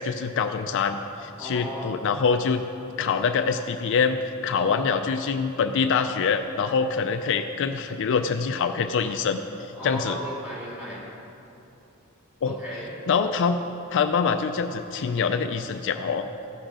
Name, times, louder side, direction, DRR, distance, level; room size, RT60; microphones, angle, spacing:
voice 1, 0.0-2.6 3.0-9.4 9.8-10.2 12.4-12.6 13.1-13.6 13.9-16.3, left 5 dB, 55° left, 8 dB, 0.4 m, -25 dB
voice 2, 1.4-2.0 4.5-4.9 9.7-11.0 12.4-12.9, equal, 5° right, -6 dB, 2.4 m, -35 dB
14.5 x 6.3 x 4.9 m, 2.9 s
head